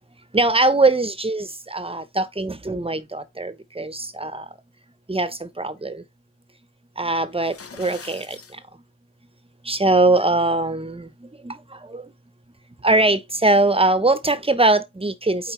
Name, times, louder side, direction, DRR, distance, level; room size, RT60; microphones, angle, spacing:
voice 1, 0.3-4.4 5.1-6.0 7.0-8.6 9.6-12.1 12.8-15.5, right 2 dB, 15° right, 1.0 m, -21 dB
sound 1, 7.3-8.6, left 5 dB, 40° left, 0.9 m, -42 dB
9.0 x 3.3 x 3.4 m
cardioid pair, 55°, 34 cm